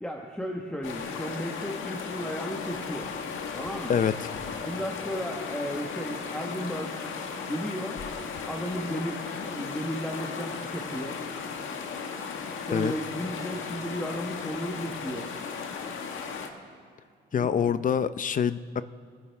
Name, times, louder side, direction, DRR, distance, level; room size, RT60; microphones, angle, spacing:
voice 1, 0.0-3.1 3.5-4.0 4.6-7.0 7.5-8.0 8.5-11.2 11.8-11.9 12.7-15.3 17.3-17.7, equal, 5° left, 0 dB, 1.4 m, -34 dB
sound 1, 0.8-16.5, left 5 dB, 80° left, 1.6 m, -36 dB
voice 2, 3.9-4.3 12.7-12.9 17.3-18.8, left 7 dB, 40° left, 14 dB, 0.6 m, -25 dB
25.0 x 10.0 x 3.5 m, 2.2 s
cardioid pair, 90°, 20 cm